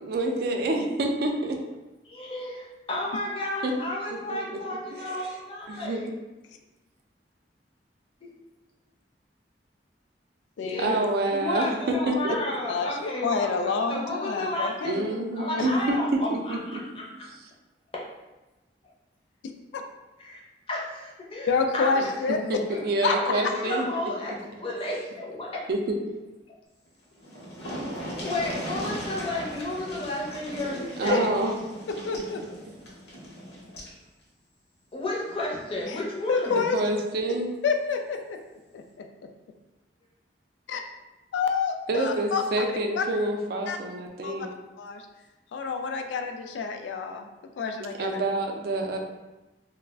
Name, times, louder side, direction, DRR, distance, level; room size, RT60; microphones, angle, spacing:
voice 1, 0.0-1.6 3.6-3.7 4.3-4.6 4.9-5.3 5.7-6.0 10.8-12.4 14.8-16.8 22.3-23.8 25.7-26.2 31.0-31.6 36.7-37.5 41.9-44.5 48.0-49.0, right 2 dB, 60° right, 2 dB, 0.4 m, -27 dB
voice 2, 2.0-6.1 8.2-8.3 10.6-17.1 17.9-18.1 20.2-20.4 20.7-22.1 22.7-22.8 23.1-25.6 27.9-31.3 33.8-33.9 34.9-36.7, left 1 dB, 30° left, -3 dB, 0.5 m, -33 dB
voice 3, 10.6-11.0 12.0-12.1 12.7-15.1 15.6-15.7 21.5-22.4 23.0-23.1 30.7-31.2 32.1-32.4 35.9-36.0 36.3-36.8 37.6-38.4 38.7-39.0 40.7-40.8 41.3-42.4 43.0-43.1 43.7-43.8 44.2-44.4 44.8-45.0 45.5-47.3 47.6-48.2, left 5 dB, 80° left, 5 dB, 0.3 m, -28 dB
sound 1, 26.9-27.0 27.2-34.0 35.3-35.4 35.8-35.9, equal, 60° left, 0.8 m, -38 dB
2.4 x 2.0 x 3.3 m, 1.1 s
head